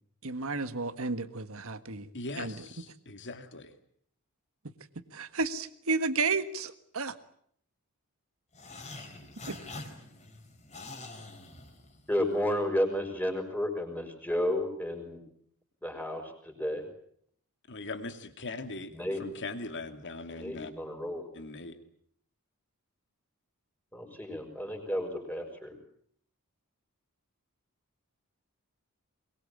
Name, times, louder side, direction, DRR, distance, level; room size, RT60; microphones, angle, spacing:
voice 1, 0.2-2.1 2.4-2.5 5.1-7.1 9.5-9.6, right 4 dB, 65° right, 11 dB, 1.6 m, -32 dB
voice 2, 2.1-3.7 17.7-20.7 21.3-21.8, left 3 dB, 55° left, 7 dB, 2.6 m, -40 dB
sound 1, 8.5-12.2, left 2 dB, 30° left, 4.3 m, -45 dB
voice 3, 12.1-15.2 15.8-16.9 18.9-19.2 20.3-21.3 23.9-25.7, left 1 dB, 5° left, 4 dB, 5.8 m, -32 dB
23.0 x 22.5 x 8.6 m, 0.66 s
head